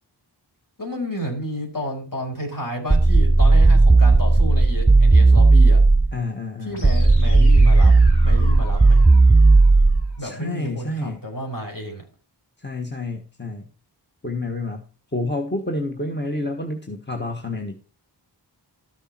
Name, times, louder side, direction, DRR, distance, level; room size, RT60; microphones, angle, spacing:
voice 1, 0.8-5.8 6.6-8.0 8.2-9.0 10.2-12.1, equal, 50° left, 1 dB, 5.2 m, -31 dB
sound 1, 2.9-6.2 6.8-10.2, right 3 dB, 10° right, 0.5 m, -14 dB
voice 2, 6.1-6.9 10.2-11.2 12.6-13.7 14.2-14.8 15.1-17.8, left 2 dB, 25° left, 3 dB, 1.5 m, -29 dB
sound 2, 6.7-10.7, left 1 dB, 65° left, 4.7 m, -42 dB
13.5 x 6.7 x 4.5 m, 0.36 s
wide cardioid pair, 60°, 42 cm